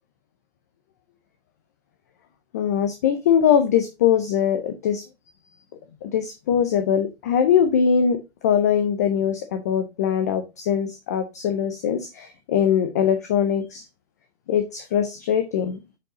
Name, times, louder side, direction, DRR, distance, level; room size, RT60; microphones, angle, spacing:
voice 1, 2.5-5.0 6.0-8.2 8.4-13.8 14.5-15.8, left 8 dB, 15° left, 7 dB, 0.3 m, -21 dB
7.7 x 4.7 x 3.8 m, 0.24 s
hypercardioid pair, 135°, 33 cm